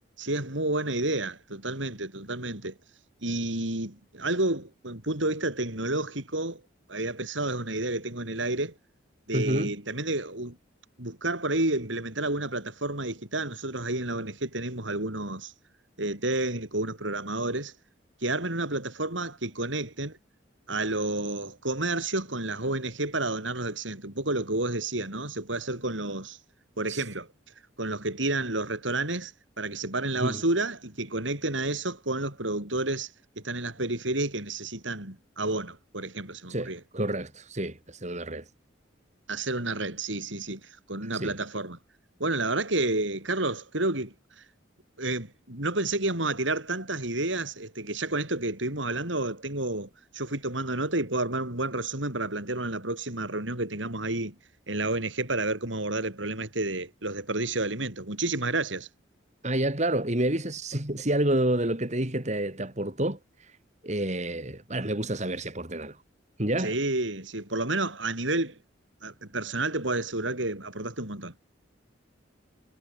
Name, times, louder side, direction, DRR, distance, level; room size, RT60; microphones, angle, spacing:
voice 1, 0.2-2.8 3.2-6.6 6.9-8.7 9.3-10.6 11.0-15.5 16.0-17.7 18.2-20.2 20.7-26.4 26.8-27.3 27.8-29.3 29.6-33.1 33.4-36.8 39.3-41.8 42.2-44.4 45.0-54.3 54.7-58.9 66.6-68.6 69.0-71.4, right 2 dB, 75° right, 6.4 m, -30 dB
voice 2, 9.3-9.7 26.9-27.0 30.2-30.4 36.5-38.5 41.0-41.3 59.4-63.6 63.8-66.0 66.4-66.8, right 1 dB, 35° right, 3.6 m, -29 dB
head